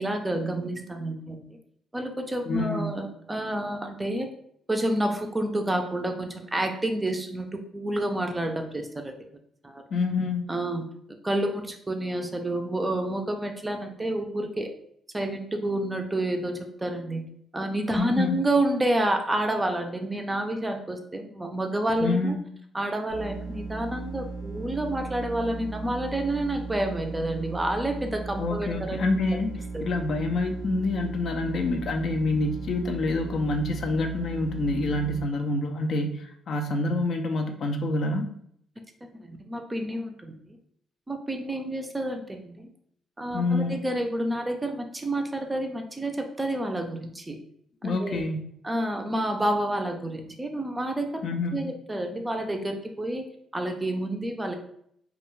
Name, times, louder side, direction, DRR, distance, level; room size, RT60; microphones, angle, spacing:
voice 1, 0.0-1.6 1.9-4.3 4.7-7.5 7.7-9.1 9.6-9.8 10.5-10.9 11.2-14.7 15.1-17.3 17.5-22.4 22.7-29.0 29.7-29.8 39.1-40.6 41.1-42.7 43.2-47.4 47.8-48.2 48.6-51.2 51.5-53.2 53.5-54.5, right 1 dB, 15° right, 4 dB, 0.4 m, -29 dB
voice 2, 2.4-2.9 9.9-10.5 18.0-18.4 22.0-22.4 28.4-38.3 43.3-43.8 47.8-48.4 51.2-51.7, left 2 dB, 60° left, 4 dB, 0.4 m, -27 dB
sound 1, 23.1-35.2, right 3 dB, 90° left, 0.7 m, -37 dB
2.3 x 2.2 x 3.0 m, 0.68 s
cardioid pair, 90°, 0 cm